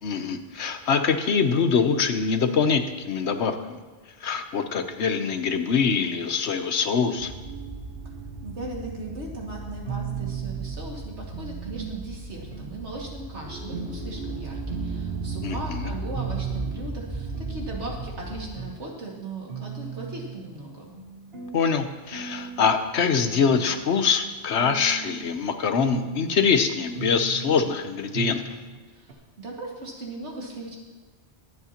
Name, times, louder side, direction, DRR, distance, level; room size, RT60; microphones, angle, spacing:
voice 1, 0.0-3.8 4.2-7.3 15.4-15.9 21.5-28.5, left 6 dB, 70° left, 8 dB, 1.1 m, -24 dB
sound 1, 7.2-18.4, right 2 dB, 10° right, 3.1 m, -36 dB
voice 2, 8.4-20.9 28.9-30.8, right 2 dB, 80° right, -2 dB, 2.5 m, -38 dB
sound 2, 9.8-10.8 11.3-12.1 12.5-13.2 13.7-14.0 14.3-14.4 14.7-15.7 16.1-16.8 17.1-18.1 18.6-18.8 19.2-19.3 19.5-20.4 20.9-21.6 22.1-22.8 23.3-23.9 24.3-25.4 25.8-26.4 26.9-27.6 28.1-28.5 28.8-28.9 29.1-29.2, right 8 dB, 60° right, 1.4 m, -36 dB
22.5 x 8.3 x 2.9 m, 1.4 s
omnidirectional pair, 1.2 m